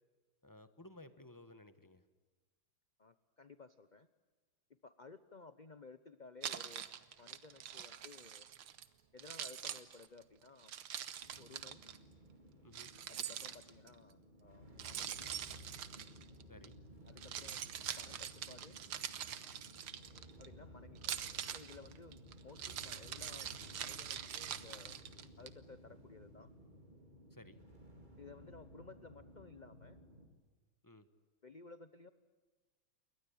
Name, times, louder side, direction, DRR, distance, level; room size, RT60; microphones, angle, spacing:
voice 1, 0.4-2.0 12.6-12.9 16.5-16.8 27.3-27.6 30.8-31.1, left 1 dB, 10° left, 11 dB, 1.0 m, -57 dB
voice 2, 3.0-4.1 4.8-6.9 7.2-8.5 9.1-10.7 11.4-11.8 13.1-15.3 17.1-17.7 18.0-18.8 20.4-21.1 21.5-23.5 23.8-25.0 25.4-26.5 28.2-30.0 31.4-32.1, left 4 dB, 40° left, 12 dB, 0.6 m, -56 dB
Keys jangling, 6.4-8.9 9.2-12.0 12.7-13.9 14.8-16.7 17.1-20.5 21.0-25.5, right 10 dB, 80° right, 2.1 m, -44 dB
sound 1, 11.2-30.3, equal, 20° right, 4.3 m, -57 dB
29.0 x 22.5 x 8.8 m, 1.3 s
omnidirectional pair, 2.3 m